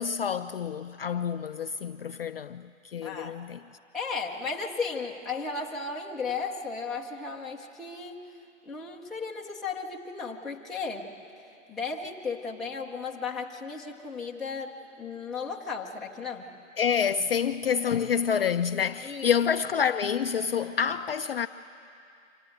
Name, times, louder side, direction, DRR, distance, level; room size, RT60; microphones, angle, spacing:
voice 1, 0.0-3.6 16.8-21.5, left 7 dB, 50° left, 0.4 m, -28 dB
voice 2, 3.0-3.3 3.9-8.2 8.7-11.1 11.7-16.5 19.0-19.3, left 4 dB, ahead, 0.8 m, -35 dB
25.5 x 17.0 x 7.9 m
hypercardioid pair, 150°, 40 cm